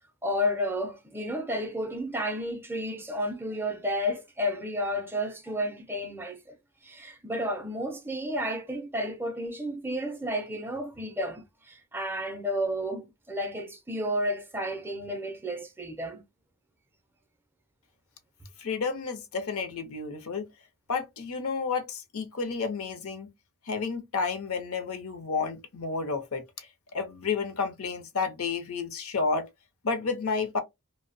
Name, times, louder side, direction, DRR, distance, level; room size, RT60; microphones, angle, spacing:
voice 1, 0.2-6.5 6.8-16.2, equal, 10° right, 0.4 m, -32 dB
voice 2, 18.6-20.5 20.9-23.3 23.7-26.7 26.9-29.5 29.8-30.6, left 4 dB, 70° left, 0.6 m, -31 dB
2.6 x 2.0 x 2.5 m
head